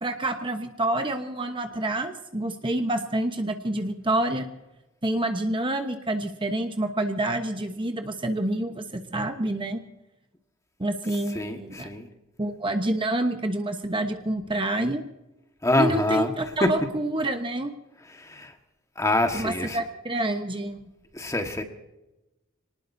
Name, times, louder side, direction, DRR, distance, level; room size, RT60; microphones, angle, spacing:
voice 1, 0.0-4.5 5.0-9.8 10.8-11.9 12.4-15.0 15.8-17.7 19.3-20.9, right 1 dB, 25° right, 6 dB, 1.1 m, -28 dB
voice 2, 11.3-12.1 15.6-16.3 16.6-16.7 18.1-18.5 19.0-19.8 21.1-21.6, left 1 dB, 15° left, 5 dB, 1.5 m, -25 dB
26.5 x 19.0 x 2.7 m, 0.97 s
head